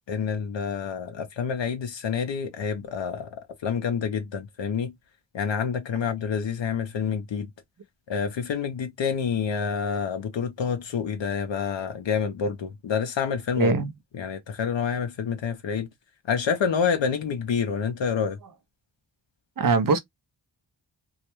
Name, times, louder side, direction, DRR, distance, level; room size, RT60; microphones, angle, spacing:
voice 1, 0.1-3.3 3.6-4.9 5.3-7.5 8.1-13.7 14.2-15.9 16.3-18.4, left 6 dB, 70° left, 0.6 m, -28 dB
voice 2, 13.6-13.9 19.6-20.0, right 4 dB, 45° right, 0.6 m, -22 dB
2.3 x 2.1 x 2.9 m
wide cardioid pair, 105°, 47 cm